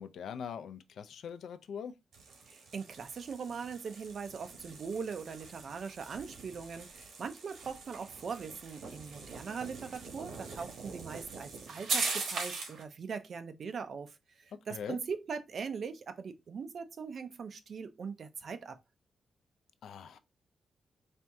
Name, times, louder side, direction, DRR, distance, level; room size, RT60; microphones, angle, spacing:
voice 1, 0.0-1.9 14.7-15.0 19.8-20.2, left 7 dB, 80° left, 0.5 m, -42 dB
sound 1, 2.1-12.8, right 4 dB, 80° right, 1.3 m, -41 dB
voice 2, 2.5-18.8, right 5 dB, 50° right, 0.5 m, -41 dB
4.3 x 2.7 x 3.4 m
wide cardioid pair, 135°, 0 cm